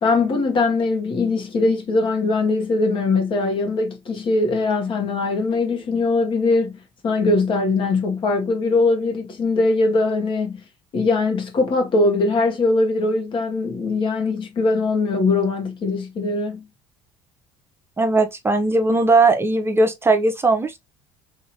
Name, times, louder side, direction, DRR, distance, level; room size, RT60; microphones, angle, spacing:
voice 1, 0.0-6.8 7.0-10.6 10.9-16.6, left 3 dB, 45° left, 1.2 m, -21 dB
voice 2, 18.0-20.8, right 2 dB, 20° right, 0.7 m, -18 dB
2.9 x 2.7 x 2.8 m
supercardioid pair, 90°, 12 cm